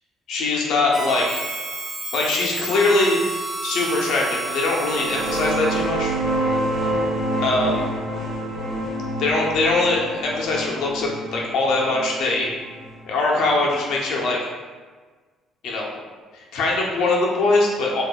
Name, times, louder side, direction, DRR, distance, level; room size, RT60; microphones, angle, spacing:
voice 1, 0.3-1.4 2.1-3.2 3.6-6.1 7.4-7.8 9.2-12.5 13.0-14.4 15.6-16.0 16.5-18.0, left 2 dB, 65° left, -2 dB, 0.6 m, -22 dB
Harmonica, 0.9-6.0, right 2 dB, 15° right, 0.3 m, -31 dB
sound 1, 4.8-14.1, right 1 dB, 50° right, 1.1 m, -27 dB
4.6 x 2.4 x 2.2 m, 1.4 s
cardioid pair, 165°, 0 cm